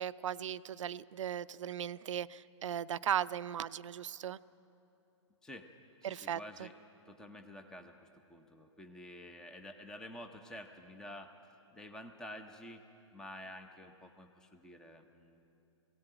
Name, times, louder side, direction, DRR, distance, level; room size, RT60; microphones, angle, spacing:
voice 1, 0.0-4.4 6.0-6.7, right 9 dB, 75° right, 16 dB, 0.5 m, -37 dB
voice 2, 6.0-6.7 7.1-11.4 11.7-12.8 13.1-15.5, left 1 dB, 5° left, 6 dB, 0.6 m, -50 dB
18.0 x 17.0 x 8.9 m, 2.8 s
hypercardioid pair, 150°, 16 cm